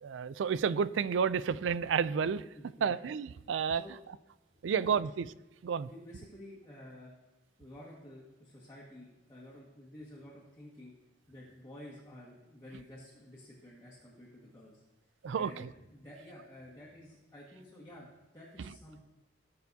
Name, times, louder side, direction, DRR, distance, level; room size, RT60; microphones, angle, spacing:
voice 1, 0.0-2.4 2.8-3.8 4.6-5.3 5.6-5.9 15.2-15.7, right 6 dB, 80° right, 17 dB, 0.4 m, -31 dB
voice 2, 2.5-3.0 3.8-3.9 4.7-5.1 5.8-7.1 7.6-10.9 11.3-14.8 15.3-19.0, left 1 dB, 20° left, -7 dB, 1.7 m, -51 dB
18.5 x 6.8 x 2.8 m, 1.0 s
head